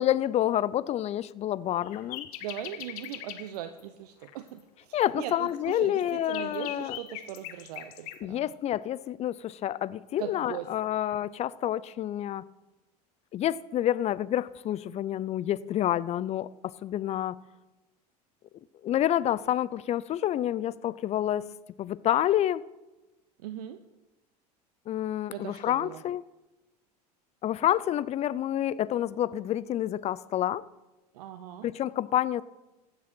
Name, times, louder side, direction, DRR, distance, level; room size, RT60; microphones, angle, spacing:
voice 1, 0.0-2.3 4.9-7.0 8.2-12.4 13.3-17.4 18.8-21.5 21.8-22.6 24.9-26.2 27.4-30.6 31.6-32.4, left 12 dB, 35° left, 0.4 m, -28 dB
sound 1, 1.8-3.8 4.2-4.5 5.0-5.1 5.5-8.2, left 12 dB, 65° left, 0.9 m, -41 dB
voice 2, 2.4-8.5 10.2-10.7 23.4-23.8 25.3-26.0 31.1-31.7, right 11 dB, 70° right, 0.7 m, -39 dB
15.0 x 7.0 x 4.4 m
hypercardioid pair, 85°, 20 cm